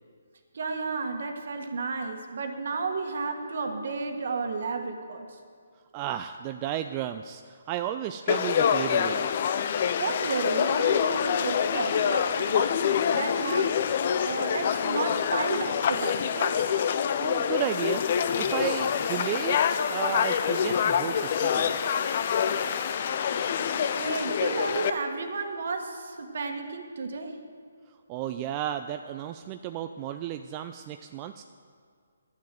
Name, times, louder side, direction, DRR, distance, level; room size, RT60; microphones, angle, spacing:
voice 1, 0.5-5.4 10.0-12.8 13.1-13.7 14.2-16.6 23.6-27.4, right 4 dB, 60° right, 5 dB, 1.6 m, -32 dB
voice 2, 5.9-9.3 17.2-18.0 18.4-21.8 28.1-31.4, right 11 dB, 25° right, 7 dB, 0.4 m, -33 dB
Conversation / Crowd, 8.3-24.9, left 8 dB, 45° left, 0.6 m, -26 dB
Water tap faucet, 17.6-23.0, right 1 dB, ahead, 1.9 m, -51 dB
11.5 x 7.3 x 7.7 m, 2.1 s
figure-of-eight pair, 150°, 0 cm